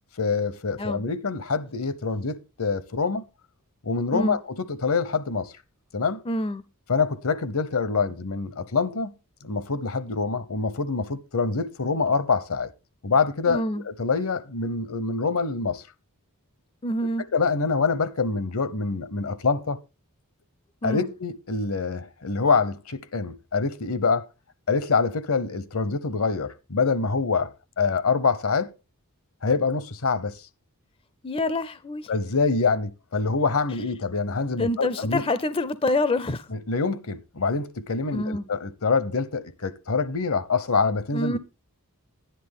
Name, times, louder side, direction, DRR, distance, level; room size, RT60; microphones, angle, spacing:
voice 1, 0.2-3.2 3.8-5.5 5.9-6.2 6.9-9.1 9.4-12.7 13.0-15.8 17.3-19.8 20.8-24.3 24.7-28.7 29.4-30.4 32.1-35.2 36.5-41.4, left 4 dB, 65° left, 0.9 m, -25 dB
voice 2, 6.3-6.6 13.5-13.8 16.8-17.2 20.8-21.1 31.2-32.1 34.6-36.5 38.1-38.4 41.1-41.4, left 1 dB, 25° left, 0.5 m, -26 dB
10.5 x 10.0 x 3.7 m
head